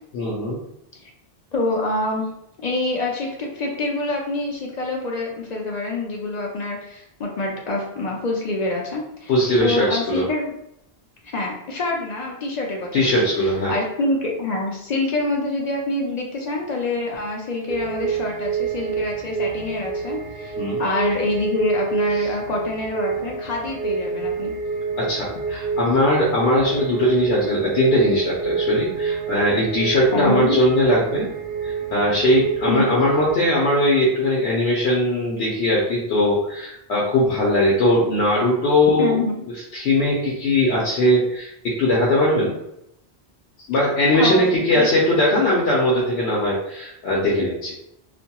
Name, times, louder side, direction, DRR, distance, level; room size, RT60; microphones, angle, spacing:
voice 1, 0.1-0.6 9.3-10.3 12.9-13.7 20.6-20.8 22.1-22.3 25.0-31.3 31.6-39.2 39.7-42.5 43.7-47.7, left 1 dB, 85° left, -4 dB, 0.9 m, -20 dB
voice 2, 1.5-2.3 2.6-10.5 11.3-24.5 30.1-30.6 32.7-32.9 39.0-39.4 44.1-44.9, left 2 dB, 55° left, -1 dB, 0.5 m, -26 dB
sound 1, 17.7-33.4, right 5 dB, 65° right, 0.8 m, -27 dB
2.8 x 2.5 x 2.2 m, 0.79 s
omnidirectional pair, 1.1 m